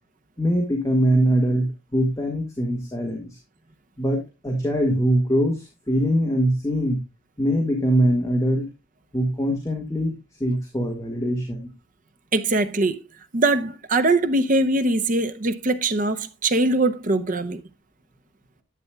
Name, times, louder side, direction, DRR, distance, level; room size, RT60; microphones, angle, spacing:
voice 1, 0.4-3.4 4.0-7.0 7.4-8.7 9.1-10.1 10.4-11.7, equal, 15° left, 1.7 m, -22 dB
voice 2, 12.3-13.0 13.3-17.6, right 2 dB, 40° right, 0.7 m, -22 dB
11.0 x 8.6 x 2.3 m
head